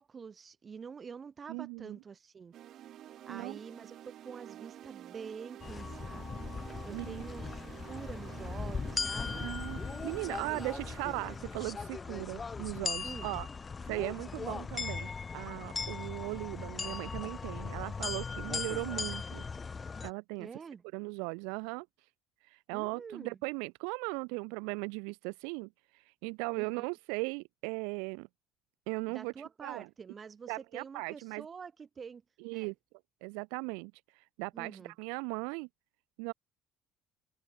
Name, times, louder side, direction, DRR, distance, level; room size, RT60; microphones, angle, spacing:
voice 1, 0.0-2.5 3.2-6.5 6.8-7.6 7.9-9.5 10.4-10.9 13.0-13.3 20.4-20.8 22.7-23.4 26.5-26.9 29.1-32.2 32.5-32.7 34.5-34.9, right 6 dB, 35° right, 5.3 m, -47 dB
voice 2, 1.5-2.0 3.3-3.6 6.9-7.2 9.3-13.5 13.9-19.4 20.0-20.5 20.9-21.9 22.5-25.7 26.2-28.3 28.9-29.3 29.6-29.9 30.5-31.4 32.4-32.7 33.2-33.9 34.4-35.7 36.2-36.3, right 38 dB, 85° right, 1.1 m, -38 dB
sound 1, 2.5-12.6, right 11 dB, 55° right, 2.7 m, -50 dB
sound 2, 5.6-20.1, left 5 dB, 25° left, 0.9 m, -39 dB
supercardioid pair, 95°, 0 cm